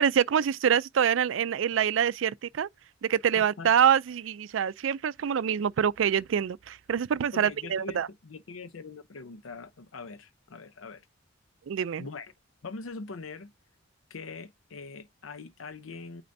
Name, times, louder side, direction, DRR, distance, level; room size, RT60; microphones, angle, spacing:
voice 1, 0.0-2.7 3.0-8.1 11.7-12.1, right 8 dB, 70° right, 0.4 m, -25 dB
voice 2, 3.3-3.7 7.3-11.1 12.0-12.3 12.6-13.5 14.1-16.2, left 4 dB, 85° left, 0.6 m, -42 dB
8.5 x 4.9 x 2.6 m
head